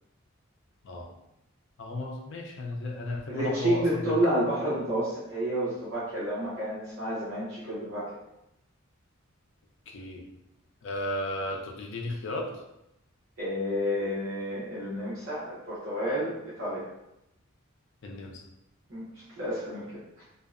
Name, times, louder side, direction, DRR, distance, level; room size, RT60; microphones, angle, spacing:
voice 1, 1.8-4.1 9.9-10.3 10.8-12.6 18.0-18.4, left 1 dB, 60° left, 1 dB, 0.4 m, -34 dB
voice 2, 3.3-8.0 13.4-16.9 18.9-19.9 20.2-20.3, equal, 60° right, -10 dB, 0.8 m, -30 dB
2.6 x 2.0 x 2.4 m, 0.87 s
head